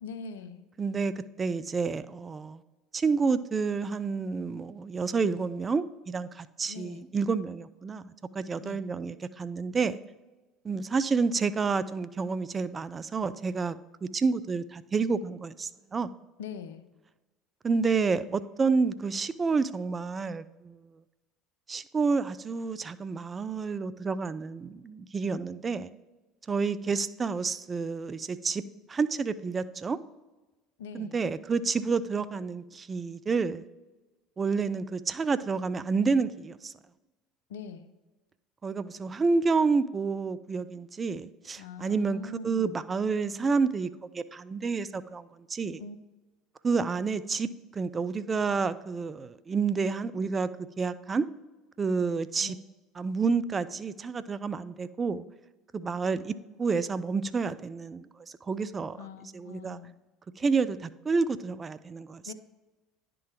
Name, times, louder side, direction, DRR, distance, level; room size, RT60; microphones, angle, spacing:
voice 1, 0.0-0.7 6.6-7.0 8.6-8.8 16.4-16.9 30.8-31.2 37.5-37.9 41.6-42.8 45.8-46.0 52.4-52.6 59.0-59.9 62.3-62.4, left 6 dB, 80° left, 11 dB, 0.5 m, -42 dB
voice 2, 0.8-2.6 2.9-10.0 10.6-16.1 17.6-20.8 21.7-25.9 26.5-28.6 28.9-30.0 30.9-33.6 34.4-36.7 38.6-45.8 46.6-50.5 50.8-51.3 51.8-52.6 53.0-55.2 55.7-58.1 58.5-59.0 59.3-59.8 60.4-62.3, right 4 dB, 30° right, 15 dB, 0.4 m, -29 dB
10.5 x 3.8 x 4.4 m, 1.1 s
hypercardioid pair, 70°, 0 cm